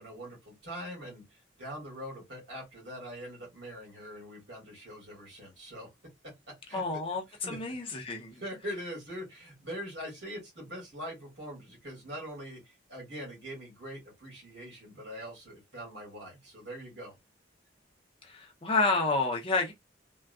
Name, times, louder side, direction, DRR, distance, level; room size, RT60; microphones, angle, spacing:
voice 1, 0.0-5.9 6.7-7.0 7.4-7.6 8.3-17.2, equal, 65° right, 1.9 m, -43 dB
voice 2, 6.7-8.4 18.2-19.7, left 3 dB, 30° left, 0.5 m, -30 dB
3.5 x 2.2 x 2.2 m
head